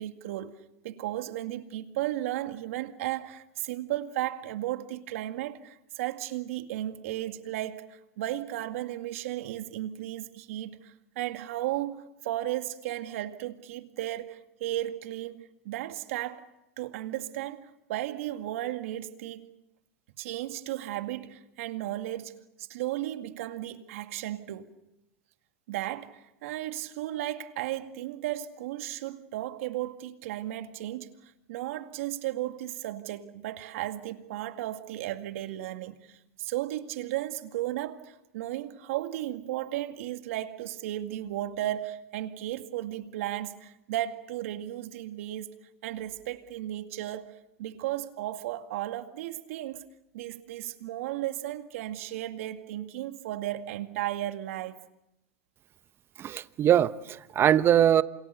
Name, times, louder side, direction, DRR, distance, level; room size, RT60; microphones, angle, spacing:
voice 1, 0.0-16.5 16.8-19.5 20.2-22.3 22.6-24.8 25.7-31.1 31.5-45.5 45.8-49.8 50.1-54.8, right 14 dB, 70° right, 2.1 m, -35 dB
voice 2, 56.2-58.0, right 10 dB, 30° right, 1.0 m, -22 dB
28.0 x 27.0 x 6.9 m
hypercardioid pair, 110°, 8 cm